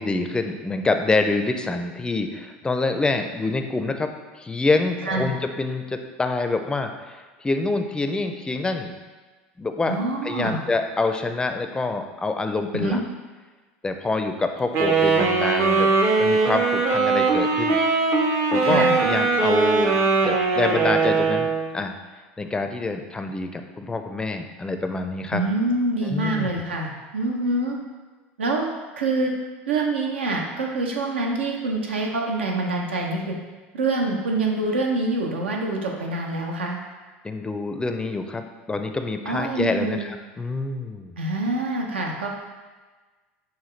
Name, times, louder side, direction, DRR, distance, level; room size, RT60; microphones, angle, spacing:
voice 1, 0.0-4.1 4.4-8.9 9.6-10.0 10.2-13.0 13.8-15.9 16.2-17.8 18.5-20.0 20.2-21.9 22.4-25.4 26.0-26.5 37.2-41.2, left 3 dB, 15° left, 6 dB, 0.4 m, -26 dB
voice 2, 9.9-10.6 12.7-13.0 18.6-19.0 25.3-27.8 28.4-28.7 29.0-29.3 29.7-33.3 33.7-36.8 39.3-40.1 41.2-42.3, right 2 dB, 90° right, 0 dB, 0.6 m, -25 dB
Wind instrument woodwind instrument, 14.7-21.7, right 4 dB, 50° right, 0.6 m, -20 dB
5.6 x 2.3 x 3.2 m, 1.3 s
hypercardioid pair, 85°, 6 cm